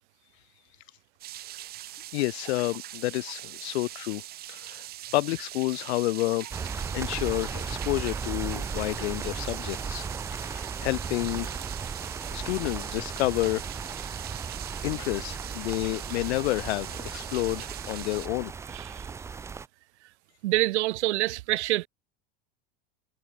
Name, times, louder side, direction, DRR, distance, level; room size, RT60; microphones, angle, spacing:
sound 1, 1.2-18.3, right 14 dB, 30° right, 3.1 m, -42 dB
voice 1, 2.1-4.2 4.5-6.5 6.9-10.1 10.3-11.6 12.3-13.9 14.8-18.5, left 19 dB, 75° left, 1.7 m, -30 dB
sound 2, 6.5-19.7, right 5 dB, 10° right, 0.6 m, -36 dB
voice 2, 20.4-21.9, right 18 dB, 90° right, 1.3 m, -26 dB
supercardioid pair, 175°, 33 cm